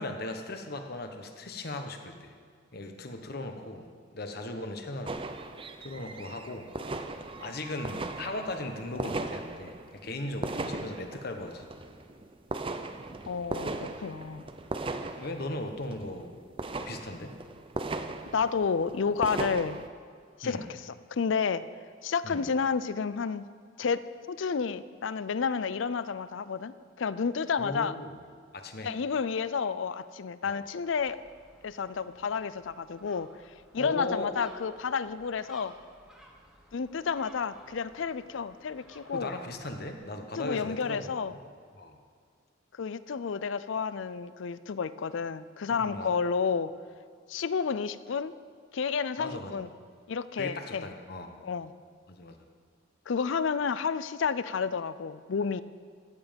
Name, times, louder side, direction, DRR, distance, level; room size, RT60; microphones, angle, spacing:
voice 1, 0.0-2.3 2.7-3.9 4.1-5.2 5.6-6.7 7.4-11.6 15.2-16.3 16.9-17.3 20.4-20.7 22.2-22.5 27.6-28.2 28.5-28.9 30.4-30.6 33.8-34.3 39.1-41.4 41.7-42.0 45.7-46.2 49.2-49.5 50.4-51.3 52.1-52.4, left 2 dB, 50° left, 5 dB, 1.1 m, -38 dB
sound 1, 5.1-19.9, right 2 dB, 25° right, 0.6 m, -38 dB
voice 2, 13.3-14.5 18.3-19.8 20.4-21.6 22.0-23.4 23.8-27.9 28.8-31.2 31.6-33.3 33.7-35.7 36.7-39.3 40.4-41.3 42.7-46.7 47.3-48.3 48.7-49.7 50.1-50.9 51.4-51.7 53.1-55.6, left 5 dB, 70° left, 15 dB, 0.4 m, -31 dB
Gull seagull, 30.9-39.9, equal, 5° right, 1.2 m, -58 dB
14.5 x 9.5 x 5.2 m, 2.1 s
head